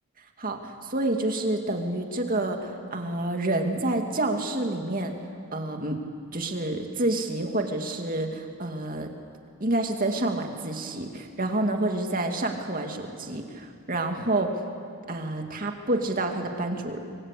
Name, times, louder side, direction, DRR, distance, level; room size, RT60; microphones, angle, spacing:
voice 1, 0.4-5.1 5.5-6.0 6.3-9.1 9.6-14.5 15.1-17.0, right 2 dB, 40° right, 3 dB, 2.4 m, -28 dB
26.0 x 23.5 x 8.5 m, 2.3 s
head